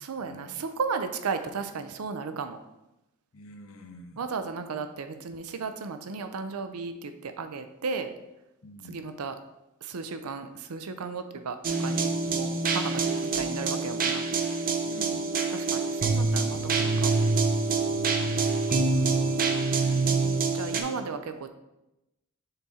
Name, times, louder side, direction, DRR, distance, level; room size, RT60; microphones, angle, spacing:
voice 1, 0.0-2.6 4.2-8.1 8.9-9.4 9.8-14.2 15.5-17.2 20.1-21.5, right 5 dB, 90° right, 9 dB, 0.5 m, -35 dB
voice 2, 3.3-4.3 8.6-9.0 14.8-15.3 17.8-18.4 18.7-19.5, left 1 dB, 65° left, 6 dB, 0.7 m, -48 dB
sound 1, 11.6-20.8, right 4 dB, 40° right, 0.7 m, -26 dB
6.7 x 4.2 x 3.6 m, 0.92 s
head